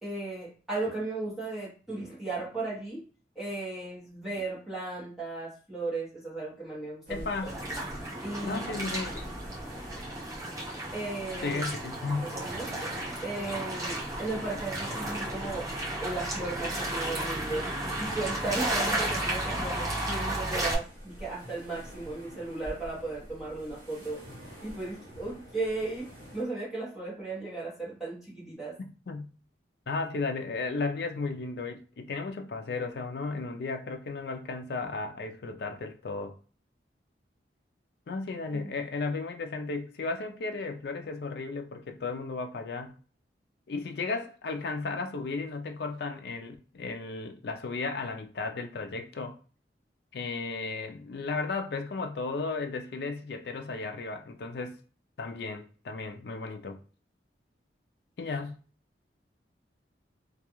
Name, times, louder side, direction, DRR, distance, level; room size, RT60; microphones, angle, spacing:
voice 1, 0.0-3.0 3.3-7.5 8.2-8.6 10.9-11.6 12.2-12.7 13.2-15.7 16.0-17.7 18.0-24.2 24.6-28.8 38.5-38.7, right 2 dB, ahead, 0.9 m, -36 dB
voice 2, 7.1-7.5 8.4-9.1 11.4-12.3 29.1-29.3 29.9-36.3 38.1-42.9 43.7-49.4 50.1-54.8 55.2-56.8 58.2-58.6, left 3 dB, 65° left, 0.4 m, -34 dB
sound 1, 7.1-26.4, equal, 50° right, 1.1 m, -47 dB
sound 2, 7.4-20.7, right 1 dB, 20° right, 0.6 m, -33 dB
2.3 x 2.3 x 2.9 m
head